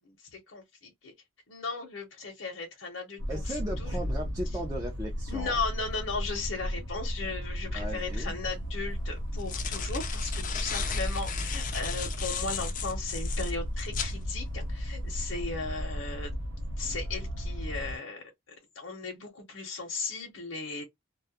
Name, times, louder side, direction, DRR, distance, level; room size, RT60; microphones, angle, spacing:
voice 1, 0.3-1.1 1.5-3.2 3.5-3.9 5.3-16.4 16.8-18.2 18.8-20.8, left 4 dB, 70° left, 0.8 m, -36 dB
sound 1, 3.2-18.0, equal, 80° right, 0.6 m, -34 dB
voice 2, 3.3-5.6 7.7-8.4, equal, 15° right, 0.5 m, -37 dB
sound 2, 8.1-8.2 9.2-14.2, left 8 dB, 40° left, 0.4 m, -36 dB
2.3 x 2.0 x 2.7 m
head